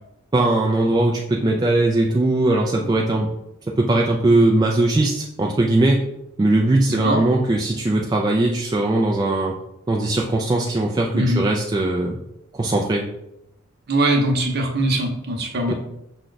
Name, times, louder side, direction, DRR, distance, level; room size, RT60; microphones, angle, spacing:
voice 1, 0.3-3.3 3.7-6.0 6.4-9.6 9.9-12.2 12.5-13.1 15.7-15.8, right 2 dB, 20° right, 0 dB, 0.3 m, -19 dB
voice 2, 6.9-7.2 11.1-11.4 13.9-15.7, right 1 dB, 50° right, 1 dB, 0.8 m, -21 dB
6.0 x 2.2 x 3.9 m, 0.83 s
head